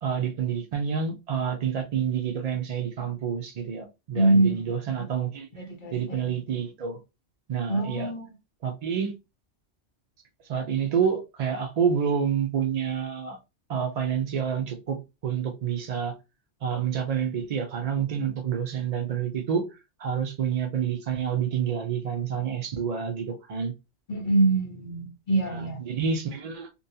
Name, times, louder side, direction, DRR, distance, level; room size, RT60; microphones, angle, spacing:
voice 1, 0.0-5.5 5.9-7.0 7.5-8.1 8.6-9.1 10.5-13.4 13.7-16.1 16.6-19.6 20.0-23.7 25.5-26.7, right 7 dB, 90° right, 0.3 m, -28 dB
voice 2, 4.1-5.1 5.5-6.4 7.7-8.3 24.1-25.8, right 2 dB, 50° left, 0.7 m, -25 dB
2.6 x 2.2 x 2.7 m
omnidirectional pair, 1.3 m